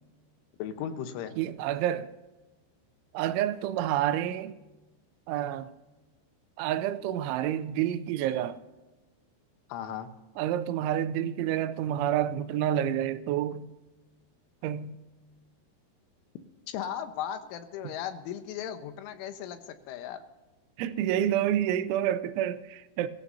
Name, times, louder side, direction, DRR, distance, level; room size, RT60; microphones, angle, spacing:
voice 1, 0.6-1.4 9.7-10.1 16.7-20.2, left 9 dB, 90° left, 3.6 m, -36 dB
voice 2, 1.4-2.1 3.1-4.6 5.3-5.7 6.6-8.6 10.4-13.7 14.6-15.0 17.8-17.9 20.8-23.1, right 11 dB, 85° right, 3.0 m, -29 dB
22.5 x 14.5 x 2.7 m
omnidirectional pair, 5.4 m